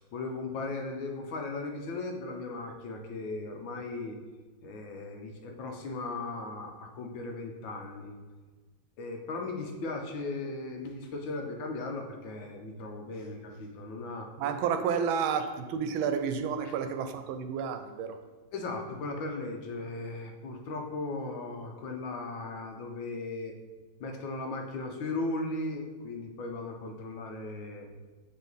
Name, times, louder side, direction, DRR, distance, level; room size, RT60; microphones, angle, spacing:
voice 1, 0.0-4.2 4.6-8.1 9.0-14.3 16.6-16.7 18.5-23.5 24.0-27.9, left 3 dB, 75° left, 3 dB, 1.6 m, -37 dB
voice 2, 14.4-18.2, right 7 dB, 90° right, 8 dB, 1.4 m, -30 dB
7.5 x 3.6 x 4.0 m, 1.3 s
omnidirectional pair, 2.1 m